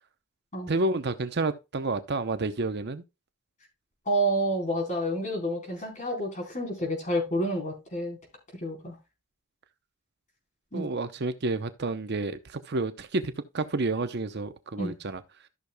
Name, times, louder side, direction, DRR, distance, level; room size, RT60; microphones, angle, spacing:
voice 1, 0.7-3.0 10.7-15.2, right 2 dB, 50° right, 0.7 m, -30 dB
voice 2, 4.1-8.2 8.6-9.0 10.7-10.9 14.7-15.0, right 1 dB, 35° left, 4.2 m, -29 dB
13.5 x 6.6 x 2.2 m
head